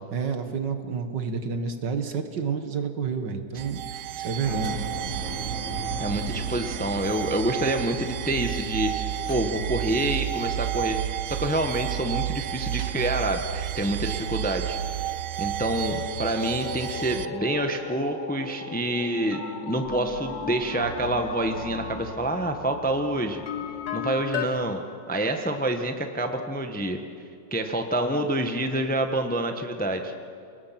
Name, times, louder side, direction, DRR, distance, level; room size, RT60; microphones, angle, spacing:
voice 1, 0.1-4.8 12.8-12.9, right 5 dB, 60° right, 7 dB, 2.0 m, -30 dB
sound 1, 3.6-17.3, right 12 dB, 90° right, 1.6 m, -31 dB
Engine, 4.4-10.2, equal, 35° left, 5.4 m, -38 dB
voice 2, 6.0-15.1 15.4-19.4 19.7-23.4 23.9-27.0 27.5-30.1, right 1 dB, 5° left, 5 dB, 0.9 m, -27 dB
sound 2, 12.0-15.5 15.7-24.5, left 5 dB, 55° left, 2.3 m, -37 dB
29.0 x 20.0 x 5.9 m, 2.5 s
omnidirectional pair, 2.2 m